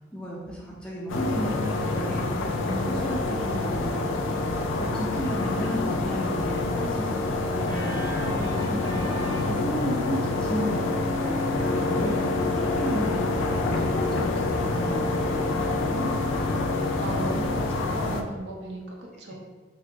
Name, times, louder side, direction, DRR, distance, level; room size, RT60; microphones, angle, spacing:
voice 1, 0.1-3.9 4.8-7.3 7.7-11.1 11.6-16.1 19.3-19.4, equal, 5° left, -5 dB, 0.5 m, -33 dB
sound 1, 1.1-18.2, left 2 dB, 85° left, 0.3 m, -27 dB
Organ, 7.6-12.4, equal, 80° right, 1.2 m, -40 dB
voice 2, 17.0-19.3, right 2 dB, 65° right, -1 dB, 0.6 m, -35 dB
3.3 x 2.2 x 3.8 m, 1.3 s
head